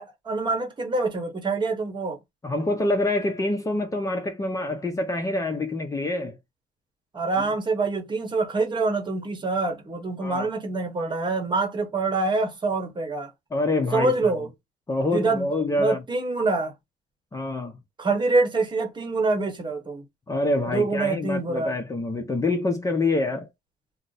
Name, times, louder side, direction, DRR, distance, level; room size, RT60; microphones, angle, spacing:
voice 1, 0.0-2.2 7.1-13.3 13.9-14.5 15.1-15.5 15.8-16.7 18.0-20.0 20.7-21.7, right 3 dB, 25° right, 1.0 m, -25 dB
voice 2, 2.4-6.4 7.4-7.5 10.2-10.5 13.5-14.4 14.9-16.0 17.3-17.8 20.3-23.5, left 2 dB, 20° left, 0.6 m, -26 dB
2.5 x 2.1 x 3.9 m
cardioid pair, 110°, 17 cm